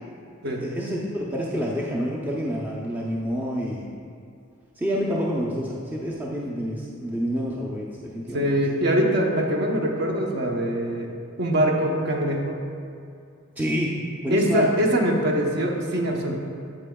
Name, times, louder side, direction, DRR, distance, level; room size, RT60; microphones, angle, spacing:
voice 1, 0.6-3.9 4.8-8.6 13.6-13.9 14.2-14.7, equal, 10° right, -4 dB, 0.5 m, -28 dB
voice 2, 8.3-11.1 11.4-12.6 14.3-16.3, equal, 55° right, 1 dB, 0.9 m, -23 dB
8.6 x 8.0 x 2.3 m, 2.4 s
head